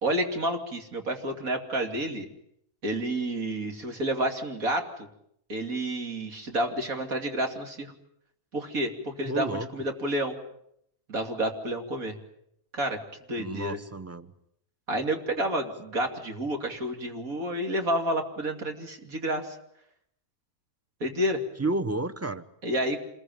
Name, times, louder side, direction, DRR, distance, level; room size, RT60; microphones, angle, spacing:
voice 1, 0.0-2.3 2.8-5.1 5.5-7.9 8.5-10.4 11.1-12.2 12.7-13.0 13.3-13.8 14.9-19.6 21.0-21.4 22.6-23.1, right 1 dB, 65° right, 4 dB, 3.3 m, -30 dB
voice 2, 9.2-9.7 13.4-14.3 21.6-22.4, right 2 dB, 10° right, 11 dB, 1.0 m, -31 dB
27.5 x 21.5 x 9.3 m, 0.74 s
omnidirectional pair, 1.6 m